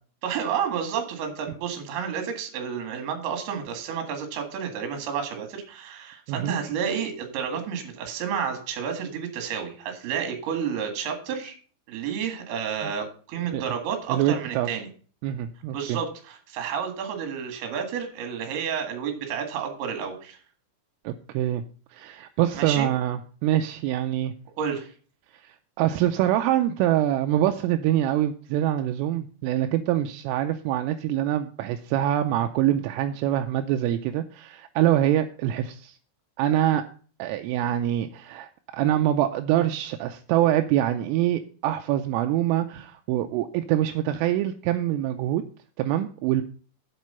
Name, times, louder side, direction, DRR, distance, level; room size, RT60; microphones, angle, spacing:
voice 1, 0.2-11.6 11.9-14.9 15.7-20.4 22.5-22.9 24.6-24.9, right 7 dB, 60° right, 5 dB, 3.5 m, -30 dB
voice 2, 14.1-14.7 15.2-16.0 21.0-21.6 21.9-24.3 25.4-36.0 36.4-36.8 37.2-45.4 45.8-46.4, right 12 dB, 85° right, 6 dB, 3.1 m, -25 dB
8.3 x 7.6 x 5.5 m, 0.40 s
omnidirectional pair, 5.9 m